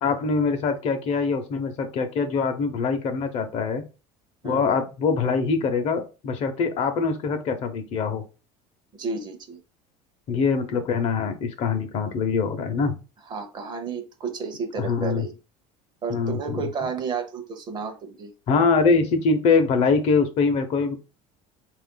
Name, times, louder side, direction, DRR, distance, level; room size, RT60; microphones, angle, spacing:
voice 1, 0.0-3.8 4.4-8.2 10.3-12.9 14.8-15.2 16.1-16.7 18.5-21.0, left 4 dB, 45° left, 7 dB, 0.8 m, -23 dB
voice 2, 4.4-4.8 8.9-9.6 13.3-15.3 16.0-18.3, right 5 dB, 30° right, 6 dB, 0.7 m, -32 dB
4.3 x 2.5 x 3.8 m, 0.31 s
cardioid pair, 150°, 15 cm